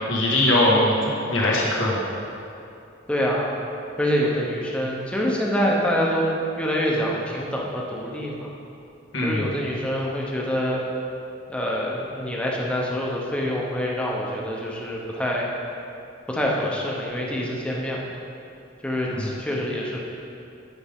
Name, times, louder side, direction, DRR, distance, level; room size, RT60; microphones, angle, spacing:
voice 1, 0.1-2.0 9.1-9.5 19.1-19.2, left 1 dB, 80° left, -5 dB, 1.6 m, -21 dB
voice 2, 3.1-3.5 4.0-8.5 9.2-10.8 11.5-15.5 16.3-18.1 18.8-20.0, equal, 5° left, -3 dB, 0.8 m, -26 dB
9.6 x 5.0 x 3.6 m, 2.6 s
head